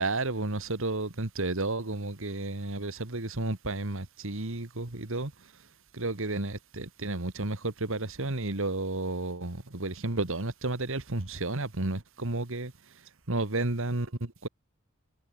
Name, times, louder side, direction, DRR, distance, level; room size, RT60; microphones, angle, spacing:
voice 1, 0.0-5.3 5.9-12.7 13.3-14.5, right 2 dB, 65° right, 2.1 m, -32 dB
head